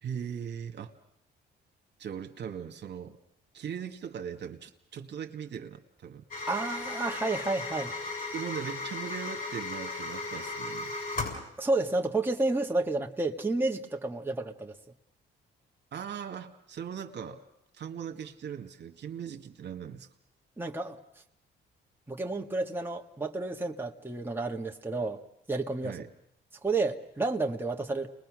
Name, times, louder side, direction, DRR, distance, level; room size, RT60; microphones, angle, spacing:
voice 1, 0.0-0.9 2.0-3.2 3.5-6.2 8.3-10.9 15.9-17.4 17.7-20.1 25.8-26.1, right 8 dB, 60° right, 5 dB, 1.9 m, -39 dB
sound 1, 6.3-11.4, left 3 dB, 45° left, 7.0 m, -36 dB
voice 2, 6.5-7.9 11.6-14.7 20.6-21.0 22.1-25.2 25.5-26.0 26.6-28.1, right 2 dB, 10° right, 2 dB, 1.7 m, -30 dB
30.0 x 21.0 x 6.4 m, 0.77 s
cardioid pair, 90°, 20 cm